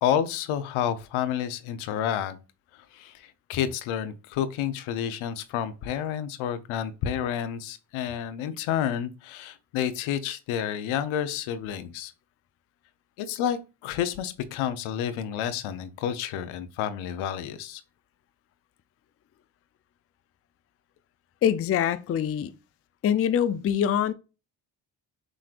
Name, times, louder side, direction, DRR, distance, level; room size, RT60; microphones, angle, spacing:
voice 1, 0.0-2.4 2.7-12.1 13.2-17.8, left 9 dB, 75° left, 0.7 m, -30 dB
voice 2, 21.4-22.5 23.0-24.1, left 9 dB, 30° left, 0.4 m, -24 dB
6.1 x 3.2 x 2.4 m
supercardioid pair, 55°, 49 cm